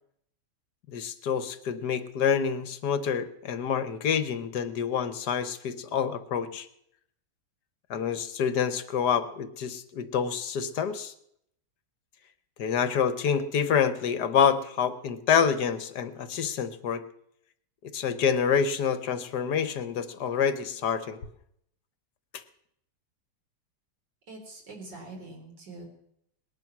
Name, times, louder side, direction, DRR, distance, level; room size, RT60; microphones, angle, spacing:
voice 1, 0.9-6.7 7.9-11.1 12.6-17.0 17.8-21.2 22.3-22.4, left 7 dB, 70° left, 12 dB, 1.6 m, -27 dB
voice 2, 24.3-25.8, right 2 dB, 90° right, 2 dB, 4.4 m, -44 dB
20.0 x 10.5 x 6.1 m, 0.73 s
omnidirectional pair, 1.8 m